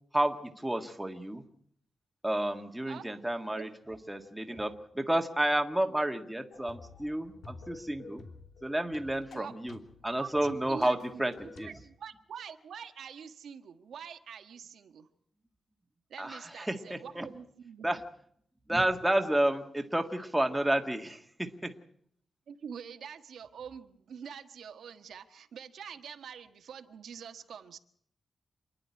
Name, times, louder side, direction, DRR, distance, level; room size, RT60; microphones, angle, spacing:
voice 1, 0.1-1.4 2.2-8.2 8.6-11.7 16.2-17.3 17.8-18.0 18.7-21.7, right 1 dB, 5° right, 5 dB, 1.7 m, -31 dB
sound 1, 6.5-11.7, left 3 dB, 85° left, 2.9 m, -51 dB
voice 2, 10.2-11.2 11.6-15.1 16.1-17.9 22.5-27.8, right 7 dB, 90° right, 7 dB, 1.4 m, -45 dB
27.5 x 11.0 x 9.6 m, 0.68 s
wide cardioid pair, 130°, 0 cm